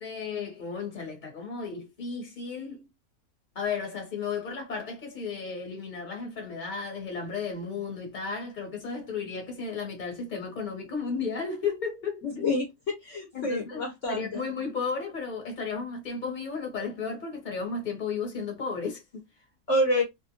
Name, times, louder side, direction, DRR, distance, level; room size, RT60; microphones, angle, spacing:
voice 1, 0.0-2.8 3.5-12.5 13.3-19.0, left 5 dB, 30° left, 1.4 m, -34 dB
voice 2, 12.2-14.4 19.7-20.0, left 1 dB, 55° left, 1.4 m, -28 dB
3.0 x 2.6 x 2.9 m
omnidirectional pair, 1.7 m